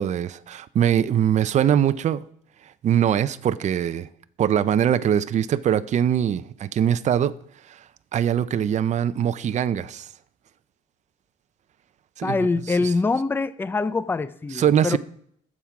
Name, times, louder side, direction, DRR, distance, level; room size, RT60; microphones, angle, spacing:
voice 1, 0.0-2.2 2.8-4.1 4.4-7.3 7.7-7.8 8.1-10.1 12.2-12.4 12.7-12.9 14.5-15.0, right 9 dB, 45° right, 0.6 m, -22 dB
voice 2, 12.2-15.0, left 3 dB, 10° left, 0.5 m, -24 dB
20.5 x 7.4 x 4.8 m
cardioid pair, 110°, 17 cm